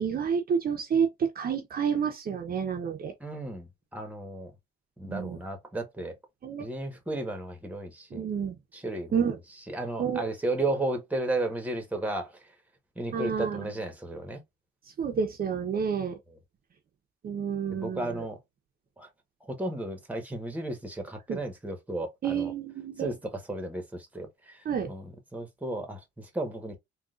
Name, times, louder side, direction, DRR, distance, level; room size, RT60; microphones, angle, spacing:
voice 1, 0.0-3.1 5.0-5.4 6.4-6.7 8.1-8.6 9.1-9.4 10.0-10.2 13.1-13.7 15.0-16.2 17.2-18.3 21.3-21.4 22.2-23.1 24.6-24.9, right 7 dB, 50° right, 0.7 m, -29 dB
voice 2, 3.2-4.5 5.0-6.1 6.6-8.3 8.7-9.2 9.7-12.4 13.0-14.4 17.7-18.4 19.0-19.1 19.4-22.5 23.0-26.8, right 2 dB, 5° right, 1.1 m, -34 dB
3.7 x 2.3 x 2.4 m
cardioid pair, 90°, 20 cm